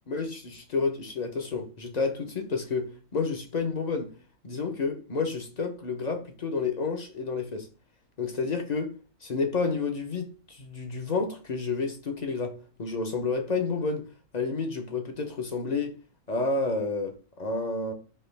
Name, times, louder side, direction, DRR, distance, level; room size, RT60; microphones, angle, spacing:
voice 1, 0.1-4.1 4.4-7.7 8.2-8.9 9.2-16.0 16.3-17.9, left 4 dB, 40° left, 0.6 m, -30 dB
4.5 x 2.8 x 3.2 m
omnidirectional pair, 1.4 m